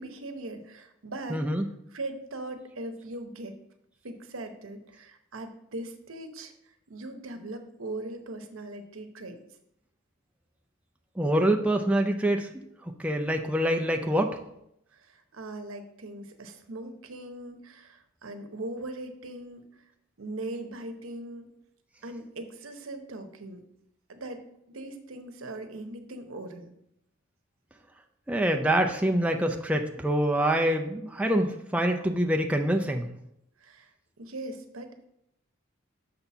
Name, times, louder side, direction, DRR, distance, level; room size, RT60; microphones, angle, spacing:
voice 1, 0.0-3.6 4.0-9.4 14.9-19.6 20.2-21.5 22.0-23.6 24.1-24.4 24.7-26.7 33.6-35.1, right 2 dB, 75° right, 7 dB, 0.9 m, -40 dB
voice 2, 1.3-1.6 11.2-12.5 13.0-14.4 28.3-33.1, right 1 dB, 5° right, 3 dB, 0.4 m, -25 dB
6.7 x 4.2 x 5.8 m, 0.78 s
head